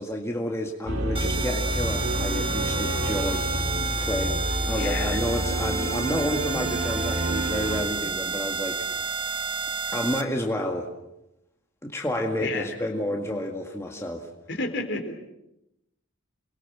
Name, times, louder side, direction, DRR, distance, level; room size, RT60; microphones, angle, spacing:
voice 1, 0.0-3.5 4.0-9.5 9.9-10.9 11.8-14.3, left 1 dB, 15° left, 1 dB, 2.0 m, -30 dB
sound 1, 0.9-7.8, equal, 90° right, 5.0 m, -29 dB
sound 2, 1.2-10.2, right 5 dB, 25° right, 2.0 m, -31 dB
voice 2, 4.7-5.2 12.4-12.7 14.5-15.1, left 2 dB, 55° left, 6 dB, 4.0 m, -31 dB
28.5 x 21.5 x 7.4 m, 0.86 s
head